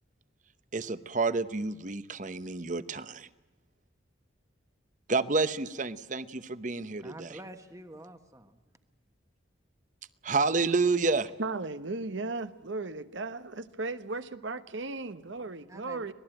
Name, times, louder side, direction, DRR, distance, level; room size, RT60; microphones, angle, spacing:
voice 1, 0.7-3.3 5.1-7.3 10.2-11.3, right 3 dB, 40° right, 14 dB, 0.9 m, -29 dB
voice 2, 7.0-8.6 15.7-16.1, right 1 dB, 15° right, 7 dB, 1.2 m, -47 dB
voice 3, 11.4-16.1, right 3 dB, 75° right, 11 dB, 1.0 m, -36 dB
26.0 x 19.0 x 8.9 m, 1.2 s
head